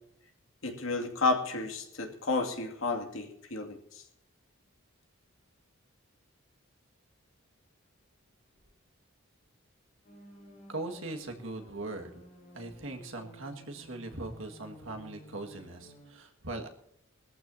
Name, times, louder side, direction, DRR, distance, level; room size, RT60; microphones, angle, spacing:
voice 1, 0.6-3.8, left 3 dB, 75° left, 3 dB, 2.4 m, -31 dB
sound 1, 10.0-16.1, equal, 35° left, 4.6 m, -54 dB
voice 2, 10.7-12.2 12.5-16.7, right 2 dB, 70° right, 3 dB, 1.9 m, -40 dB
21.0 x 14.0 x 2.8 m, 0.75 s
head